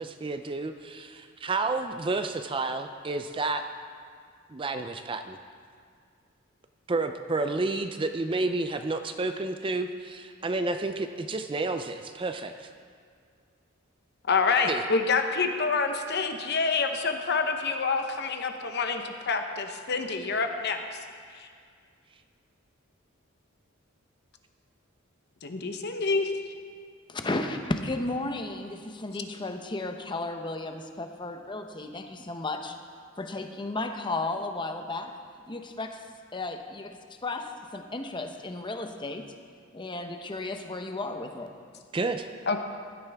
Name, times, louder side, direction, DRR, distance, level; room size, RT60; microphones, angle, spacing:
voice 1, 0.0-3.7 4.5-5.4 6.9-12.7 14.6-14.8 41.9-42.3, right 3 dB, 25° right, 8 dB, 0.4 m, -30 dB
voice 2, 14.3-21.0 21.4-21.5 25.4-26.3 42.5-42.6, left 4 dB, 55° left, 5 dB, 0.9 m, -27 dB
voice 3, 27.1-32.8 33.2-35.2 35.5-39.3 39.7-41.5, left 2 dB, 25° left, 6 dB, 0.7 m, -34 dB
15.5 x 12.5 x 3.5 m, 2.1 s
head